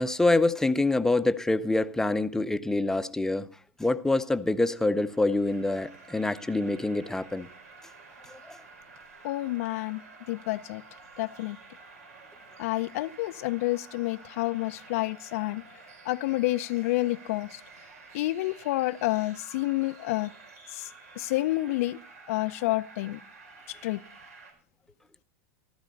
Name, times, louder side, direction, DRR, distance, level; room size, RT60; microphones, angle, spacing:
voice 1, 0.0-3.5 3.8-7.5 8.3-8.6, left 2 dB, 5° left, 0.7 m, -26 dB
sound 1, 4.7-24.5, right 4 dB, 85° right, 4.6 m, -51 dB
voice 2, 9.2-10.0 10.3-10.8 11.2-11.6 12.6-15.6 16.1-17.6 18.1-20.3 20.7-20.9 21.2-22.0 22.3-23.2 23.7-24.0, left 18 dB, 65° left, 0.5 m, -29 dB
15.0 x 12.5 x 3.9 m
hypercardioid pair, 110°, 8 cm